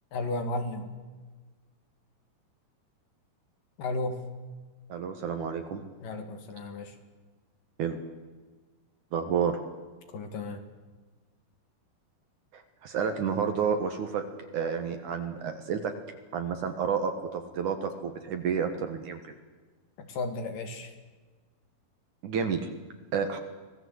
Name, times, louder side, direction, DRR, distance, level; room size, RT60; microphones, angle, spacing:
voice 1, 0.1-0.9 3.8-4.2 6.0-7.0 10.1-10.6 20.0-20.9, left 2 dB, 60° left, 7 dB, 3.3 m, -34 dB
voice 2, 4.9-5.8 7.8-8.0 9.1-9.6 12.5-14.2 14.5-15.9 16.3-19.2 22.2-22.7 23.1-23.4, right 6 dB, 60° right, 7 dB, 2.4 m, -30 dB
25.0 x 19.0 x 8.0 m, 1.3 s
omnidirectional pair, 4.8 m